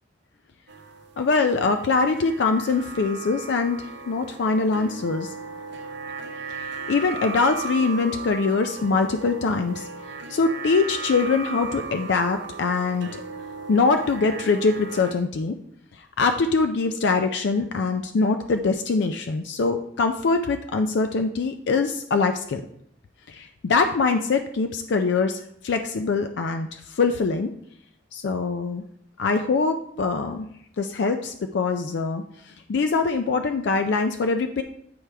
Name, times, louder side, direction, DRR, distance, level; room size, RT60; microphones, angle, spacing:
sound 1, 0.7-15.1, right 4 dB, 65° right, 0.7 m, -36 dB
voice 1, 1.2-3.8 4.1-5.3 6.5-9.9 10.3-13.1 13.7-15.6 16.2-22.6 23.3-27.5 28.1-28.8 29.2-30.5 30.8-32.2 32.7-34.6, left 4 dB, 65° left, 7 dB, 0.4 m, -23 dB
8.7 x 4.7 x 3.3 m, 0.71 s
head